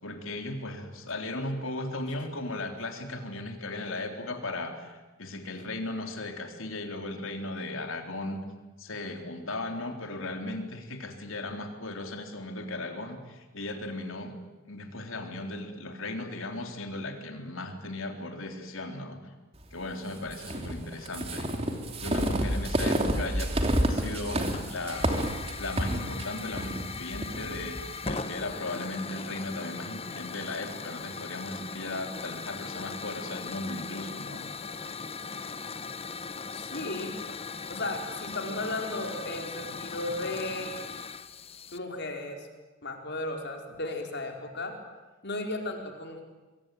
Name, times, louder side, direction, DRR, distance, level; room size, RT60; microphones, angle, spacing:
voice 1, 0.0-8.4 8.8-14.4 14.7-19.2 19.7-21.5 22.0-23.5 23.9-25.3 25.6-27.8 28.1-34.5, left 2 dB, 65° left, 5 dB, 3.7 m, -36 dB
sound 1, 20.3-28.2, right 1 dB, 25° right, 3.1 m, -29 dB
Hiss / Fire, 24.5-41.8, left 4 dB, 25° left, 0.9 m, -39 dB
voice 2, 36.5-37.2 37.7-40.7 41.7-42.5 42.8-44.8 45.2-46.2, left 2 dB, 50° left, 3 dB, 4.5 m, -35 dB
27.0 x 23.0 x 9.4 m, 1.2 s
head